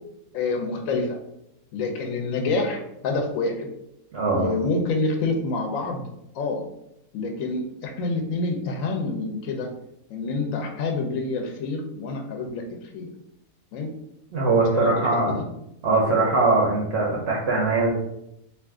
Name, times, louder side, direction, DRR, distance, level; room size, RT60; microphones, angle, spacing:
voice 1, 0.3-1.2 1.7-3.7 4.3-6.0 6.3-6.6 7.1-9.7 10.1-13.1 13.7-13.9 14.8-15.4, left 3 dB, 70° left, 3 dB, 0.8 m, -27 dB
voice 2, 4.1-4.5 14.3-15.4 15.8-17.9, right 3 dB, 65° right, -3 dB, 0.7 m, -21 dB
2.4 x 2.4 x 3.5 m, 0.82 s
omnidirectional pair, 1.7 m